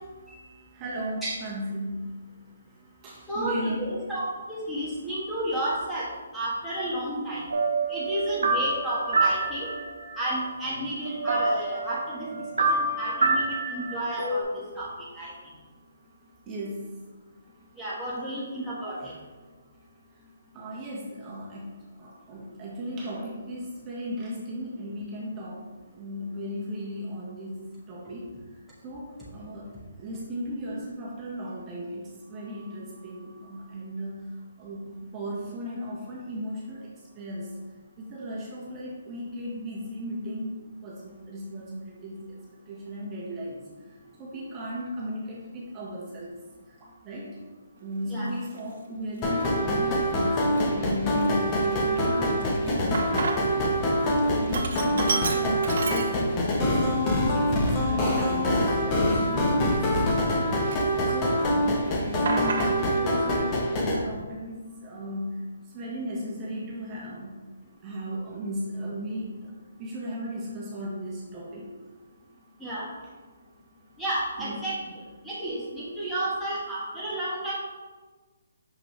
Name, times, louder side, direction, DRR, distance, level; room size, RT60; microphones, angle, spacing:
voice 1, 0.7-2.2 3.0-3.8 16.5-17.0 19.0-19.1 20.5-28.3 28.8-29.7 30.0-37.6 38.0-43.6 44.2-46.3 46.7-47.4 47.8-54.0 54.4-57.0 57.3-60.3 61.0-67.4 67.8-69.5 69.8-71.7 74.4-74.7, equal, 20° right, -6 dB, 1.3 m, -36 dB
voice 2, 3.3-6.1 6.3-7.4 7.9-9.7 10.2-14.5 14.7-15.3 17.8-19.1 48.0-48.3 72.6-72.9 74.0-74.8 75.2-77.5, right 1 dB, 5° left, -9 dB, 1.4 m, -31 dB
sound 1, 7.5-10.3 10.7-10.8 11.1-14.4, right 3 dB, 80° right, 1.1 m, -27 dB
Sink (filling or washing), 48.4-48.6 49.3-49.8 50.2-50.3 50.6-53.7 54.0-56.6 57.0-57.1 57.8-60.3 60.6-61.4 61.7-63.1, right 4 dB, 60° right, 0.7 m, -33 dB
sound 2, 49.2-64.0, equal, 25° left, 1.0 m, -25 dB
5.9 x 5.1 x 3.2 m, 1.3 s
hypercardioid pair, 150°, 0 cm